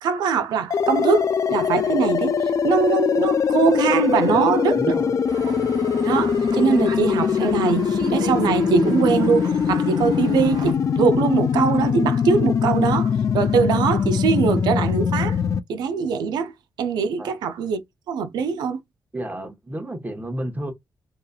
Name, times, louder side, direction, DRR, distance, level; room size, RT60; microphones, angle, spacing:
voice 1, 0.0-2.4 2.6-4.8 5.5-5.6 6.0-15.4 15.7-16.5 16.8-17.8 18.1-18.8, right 6 dB, 85° right, 0.4 m, -22 dB
sound 1, 0.7-15.6, left 7 dB, 50° left, 0.3 m, -22 dB
voice 2, 4.3-5.2 17.2-17.3 19.1-20.7, right 1 dB, 25° right, 1.1 m, -32 dB
sound 2, 5.3-10.7, right 4 dB, 70° right, 0.8 m, -36 dB
2.8 x 2.3 x 2.3 m
cardioid pair, 60°, 7 cm